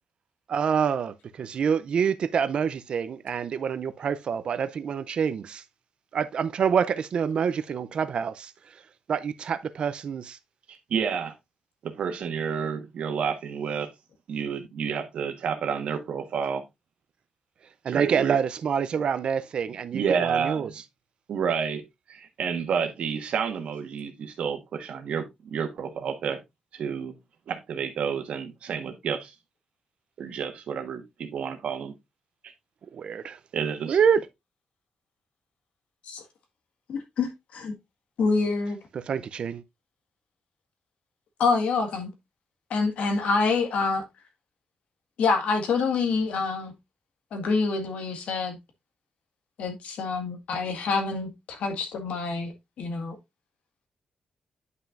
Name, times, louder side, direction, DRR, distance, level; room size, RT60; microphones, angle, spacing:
voice 1, 0.5-5.6 6.1-8.5 9.1-10.4 17.8-20.7 32.9-33.4 33.9-34.2 38.9-39.6, right 7 dB, 50° right, 0.5 m, -26 dB
voice 2, 10.9-11.3 11.8-13.9 14.3-16.6 17.9-18.4 19.9-20.7 21.3-21.8 22.1-26.4 26.7-27.1 27.5-29.3 30.2-31.9 33.5-34.0, right 7 dB, 65° right, 1.3 m, -30 dB
voice 3, 36.9-37.7 38.2-38.8 41.4-42.1 42.7-44.0 45.2-46.7 47.3-48.6 49.6-53.2, left 4 dB, 80° left, 1.8 m, -26 dB
9.4 x 5.8 x 2.5 m
wide cardioid pair, 170°, 2 cm